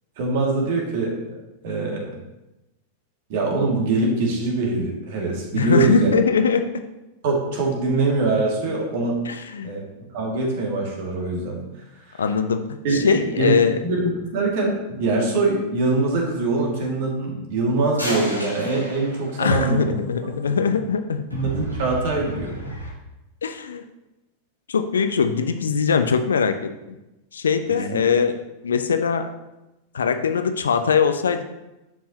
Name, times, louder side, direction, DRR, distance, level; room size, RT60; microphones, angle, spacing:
voice 1, 0.2-1.4 1.6-2.2 3.3-6.1 7.2-9.2 9.6-11.6 12.1-12.2 12.8-20.0 20.2-20.6 21.3-22.6 27.7-28.0, right 3 dB, 50° right, -1 dB, 2.1 m, -23 dB
voice 2, 5.5-6.6 9.3-9.7 12.2-12.6 12.9-13.8 19.4-21.2 23.4-23.8 24.7-27.0 27.3-29.3 29.9-31.4, left 6 dB, 70° left, 8 dB, 0.6 m, -21 dB
sound 1, 18.0-19.8 21.3-22.9, equal, 85° right, 1.7 m, -32 dB
10.5 x 5.6 x 2.9 m, 0.97 s
figure-of-eight pair, 90°, 0 cm